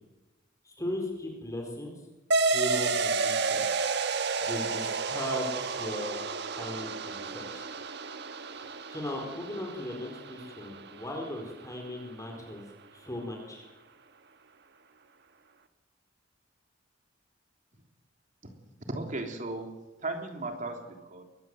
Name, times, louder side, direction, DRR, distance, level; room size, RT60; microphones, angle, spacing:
voice 1, 0.6-2.0 2.5-3.7 4.4-6.2 6.5-7.7 8.5-12.7 12.9-13.7, left 1 dB, 20° left, 2 dB, 4.4 m, -37 dB
sound 1, 2.3-11.3, right 4 dB, 60° right, 1.4 m, -31 dB
voice 2, 18.9-21.2, right 2 dB, 45° right, 4 dB, 3.3 m, -36 dB
23.0 x 20.0 x 7.9 m, 1.1 s
head